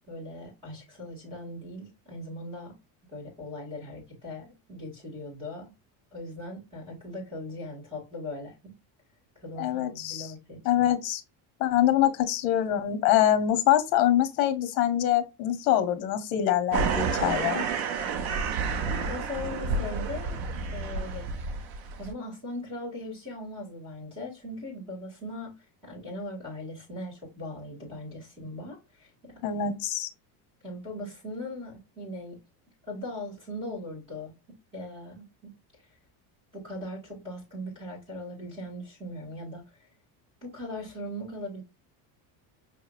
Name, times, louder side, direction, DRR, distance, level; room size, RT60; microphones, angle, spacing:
voice 1, 0.1-2.7 3.1-5.7 6.1-8.7 9.4-10.9 18.7-20.4 20.7-21.2 22.0-25.5 25.8-29.3 30.6-32.4 32.9-34.3 34.7-35.5 36.5-39.6 40.4-41.6, left 1 dB, 15° right, 2.1 m, -39 dB
voice 2, 9.6-10.3 10.6-11.2 11.6-17.6 29.4-30.1, left 11 dB, 65° left, 0.8 m, -24 dB
sound 1, 16.7-22.1, right 5 dB, 55° right, 0.6 m, -30 dB
5.5 x 2.9 x 2.4 m
cardioid pair, 180°, 44 cm